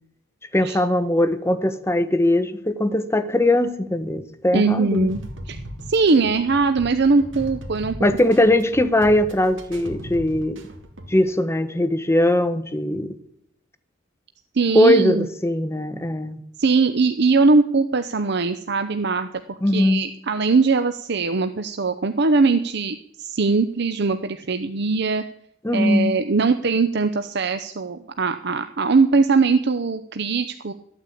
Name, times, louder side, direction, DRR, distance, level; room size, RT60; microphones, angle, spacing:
voice 1, 0.5-5.1 8.0-10.6 11.1-13.2 14.7-16.4 19.6-20.0 25.6-26.1, left 1 dB, 15° left, 1.1 m, -20 dB
voice 2, 4.5-5.2 5.5-5.6 5.9-7.9 14.5-15.3 16.6-25.2 25.7-30.7, right 4 dB, 60° right, 0.8 m, -21 dB
sound 1, 4.9-11.1, equal, 80° right, 2.3 m, -37 dB
13.5 x 9.0 x 8.5 m
head